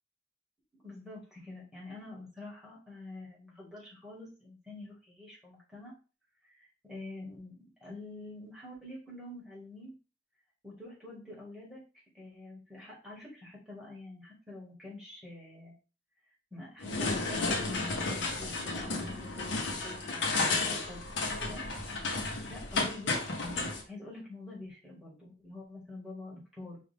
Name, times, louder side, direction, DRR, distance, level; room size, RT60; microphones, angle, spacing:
voice 1, 0.7-5.9 6.4-10.0 10.6-15.7 16.5-21.0 21.4-21.7 22.0-23.6 23.8-26.8, left 2 dB, 5° right, -5 dB, 1.7 m, -46 dB
sound 1, 16.8-23.8, left 3 dB, 75° left, 0.9 m, -33 dB
4.9 x 2.4 x 3.3 m, 0.34 s
head